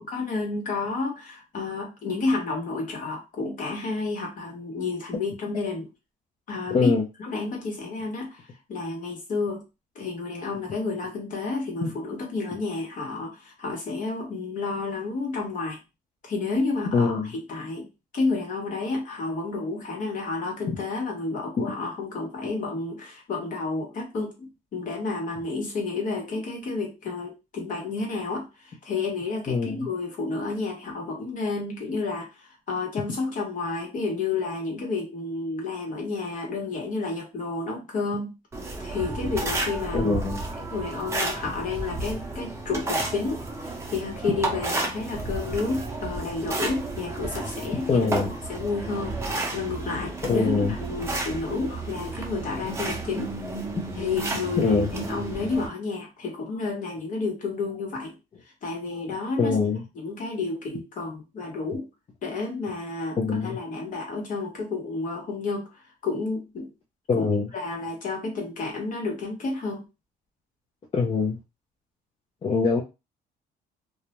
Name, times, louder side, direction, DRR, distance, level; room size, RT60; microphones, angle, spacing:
voice 1, 0.1-5.9 6.5-6.9 7.2-9.6 9.9-15.8 16.2-17.9 18.1-38.3 38.8-40.1 40.6-48.1 48.5-53.3 53.9-58.1 58.6-59.6 59.9-61.9 62.2-66.7 67.2-67.3 67.5-69.8, left 3 dB, 50° left, 1 dB, 1.1 m, -31 dB
voice 2, 6.7-7.0 11.8-11.9 16.9-17.3 20.7-20.8 29.5-29.9 39.9-40.4 47.9-48.3 50.3-50.8 54.6-54.9 59.4-59.8 63.2-63.6 67.1-67.5 70.9-71.4 72.4-72.8, left 4 dB, 35° left, -2 dB, 0.6 m, -23 dB
sound 1, 38.5-55.7, right 2 dB, 15° right, 0.6 m, -32 dB
2.3 x 2.1 x 3.0 m, 0.27 s
cardioid pair, 110°, 17 cm